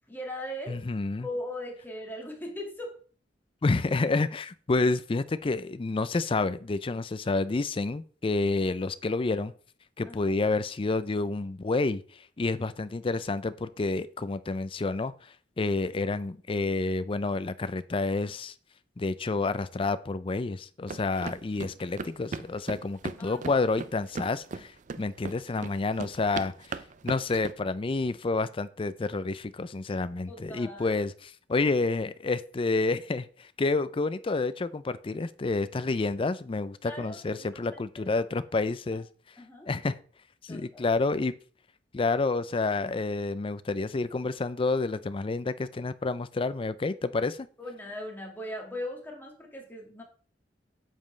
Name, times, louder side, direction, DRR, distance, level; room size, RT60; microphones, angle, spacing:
voice 1, 0.1-0.8 1.2-2.9 10.0-10.4 23.2-23.4 30.3-31.0 36.9-37.2 37.5-37.8 38.9-39.0 39.4-39.7 40.5-40.9 47.6-50.0, left 1 dB, 10° left, 0 dB, 1.9 m, -39 dB
voice 2, 0.7-1.3 3.6-9.5 10.0-12.0 12.4-15.1 15.6-18.5 19.0-24.7 25.0-26.5 27.0-39.1 39.7-40.0 40.4-41.4 41.9-47.5, left 3 dB, 30° left, 14 dB, 0.4 m, -29 dB
sound 1, 20.9-27.5, right 4 dB, 45° right, 0.4 m, -38 dB
8.9 x 7.4 x 3.2 m, 0.43 s
head